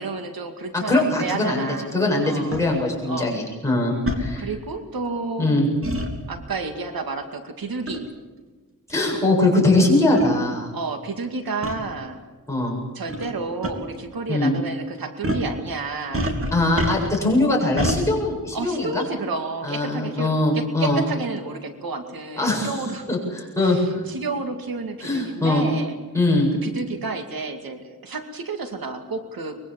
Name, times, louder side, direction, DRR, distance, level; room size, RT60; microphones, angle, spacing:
voice 1, 0.0-1.9 2.2-2.5 3.1-3.4 4.4-5.7 6.3-8.1 10.7-12.2 12.9-16.4 18.5-23.1 23.6-26.0 26.6-29.6, right 3 dB, 85° right, 6 dB, 2.4 m, -31 dB
voice 2, 0.7-1.7 1.9-4.5 5.4-5.7 8.9-10.7 12.5-12.8 14.3-14.5 16.5-19.0 19.6-21.0 22.4-22.8 23.1-24.1 25.0-25.7 26.1-26.5, left 2 dB, 10° left, -4 dB, 7.7 m, -21 dB
sound 1, 2.5-2.6 4.1-4.2 5.8-6.1 7.9-8.1 8.9-9.0 9.8-9.9 10.2-10.3 11.6-11.8 13.1-13.3 13.6-13.7 15.2-15.5 16.1-17.3 17.8-18.0, equal, 40° right, 3.1 m, -26 dB
24.0 x 22.5 x 7.6 m, 1.3 s
wide cardioid pair, 160°, 35 cm